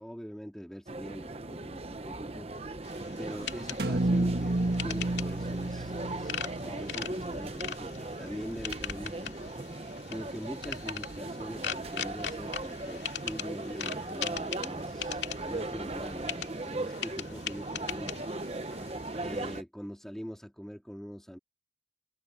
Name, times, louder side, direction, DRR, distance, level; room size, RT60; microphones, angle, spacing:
voice 1, 0.0-2.5 3.2-9.4 10.1-18.3 19.2-21.4, equal, 5° left, 3.4 m, -43 dB
sound 1, 0.9-19.6, right 2 dB, 35° right, 0.9 m, -38 dB
sound 2, 2.8-19.6, left 8 dB, 80° left, 2.3 m, -41 dB
sound 3, 3.8-8.0, right 2 dB, 60° right, 1.9 m, -31 dB
head